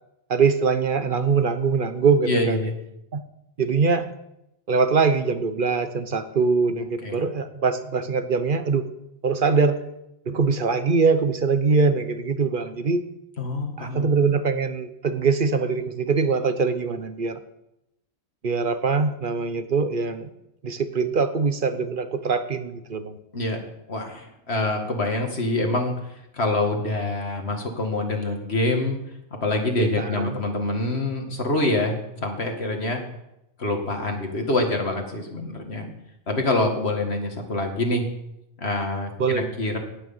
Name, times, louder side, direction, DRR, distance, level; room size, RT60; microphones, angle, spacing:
voice 1, 0.3-2.6 3.1-3.2 3.6-4.1 4.7-8.9 9.2-9.8 10.3-13.0 13.8-17.4 18.4-20.3 20.6-23.2 29.8-30.3 39.2-39.5, right 4 dB, 55° right, 10 dB, 1.0 m, -23 dB
voice 2, 2.2-2.7 7.0-7.2 13.4-14.1 23.3-23.6 23.9-29.0 29.4-33.0 33.6-35.9 36.3-38.1 38.6-39.8, left 2 dB, 75° left, 3 dB, 2.3 m, -25 dB
18.0 x 6.3 x 7.2 m, 0.86 s
omnidirectional pair, 1.1 m